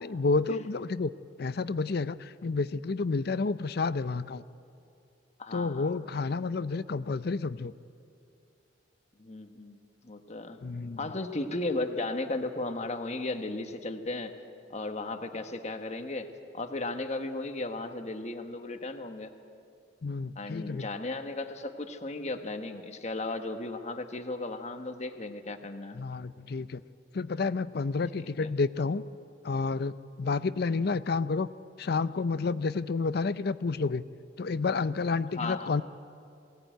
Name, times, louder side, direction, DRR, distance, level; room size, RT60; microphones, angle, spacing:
voice 1, 0.0-1.1 1.4-4.4 5.5-7.7 10.6-11.0 20.0-20.9 25.9-26.8 27.1-29.0 29.4-31.5 31.8-34.0 34.4-35.8, left 4 dB, 60° left, 15 dB, 0.5 m, -30 dB
voice 2, 5.4-5.9 9.2-9.8 10.0-10.6 11.0-14.3 14.7-16.3 16.5-19.3 20.4-26.0 28.2-28.5 35.3-35.7, left 2 dB, 40° left, 7 dB, 1.2 m, -35 dB
21.5 x 17.5 x 9.1 m, 2.5 s
head